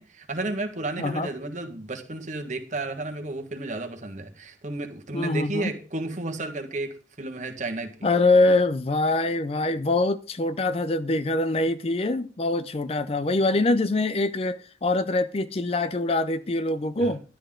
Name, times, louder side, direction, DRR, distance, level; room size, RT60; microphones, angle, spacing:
voice 1, 0.0-8.1 17.0-17.1, right 2 dB, 40° right, 1.5 m, -32 dB
voice 2, 1.0-1.3 5.1-5.7 8.0-17.2, left 2 dB, 30° left, 0.5 m, -24 dB
12.5 x 10.0 x 3.7 m
head